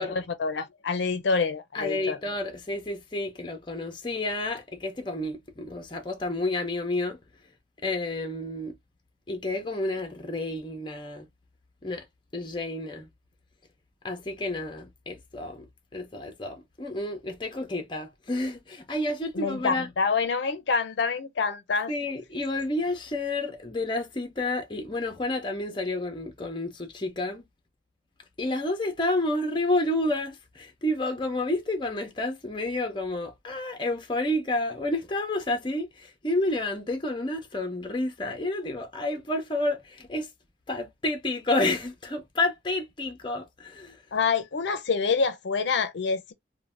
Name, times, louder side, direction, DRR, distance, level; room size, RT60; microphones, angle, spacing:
voice 1, 0.0-2.2 19.3-21.9 44.1-46.3, left 5 dB, 75° left, 0.5 m, -27 dB
voice 2, 1.7-7.2 7.8-8.7 9.3-11.3 11.8-12.0 12.3-13.1 14.0-15.7 15.9-19.9 21.9-27.4 28.4-40.3 40.7-44.0, left 2 dB, 25° left, 0.6 m, -30 dB
2.6 x 2.1 x 3.3 m
head